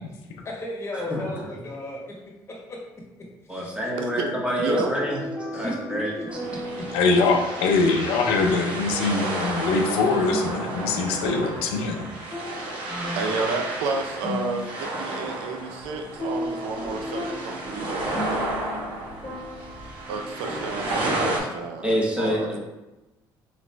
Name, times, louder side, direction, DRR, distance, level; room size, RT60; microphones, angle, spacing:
voice 1, 0.4-2.2 2.7-2.8 3.5-3.7 4.1-4.2 5.5-6.9, left 1 dB, 30° left, -2 dB, 1.4 m, -34 dB
voice 2, 3.5-5.2 5.5-6.1 12.9-13.3 21.8-22.6, equal, 10° right, -3 dB, 1.3 m, -27 dB
voice 3, 4.6-4.9 13.2-18.5 20.1-22.5, right 4 dB, 85° right, 4 dB, 0.6 m, -31 dB
sound 1, 4.7-20.2, left 1 dB, 10° left, 1.2 m, -37 dB
sound 2, 6.3-21.4, right 2 dB, 70° right, 1.2 m, -32 dB
voice 4, 6.9-12.1, left 3 dB, 85° left, 3 dB, 0.5 m, -23 dB
4.0 x 3.0 x 3.4 m, 1.0 s
supercardioid pair, 80°, 9 cm